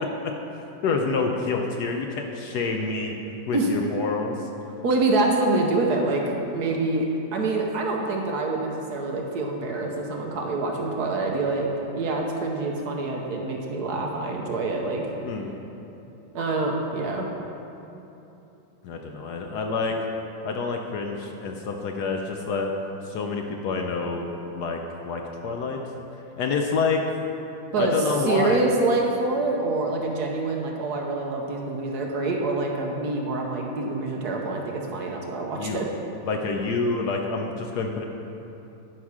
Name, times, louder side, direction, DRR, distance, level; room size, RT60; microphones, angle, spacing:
voice 1, 0.8-3.1 3.5-4.4 15.2-15.5 18.8-20.0 20.4-22.7 23.1-24.3 24.5-24.8 25.0-25.8 26.4-27.0 27.8-28.6 35.6-35.9 36.3-38.0, left 4 dB, 70° left, 2 dB, 1.1 m, -27 dB
voice 2, 4.8-6.2 6.5-7.1 7.3-11.7 12.0-15.1 16.3-17.3 27.7-27.9 28.2-35.9, right 3 dB, 60° right, 0 dB, 1.2 m, -26 dB
11.0 x 5.8 x 4.8 m, 2.9 s
omnidirectional pair, 2.1 m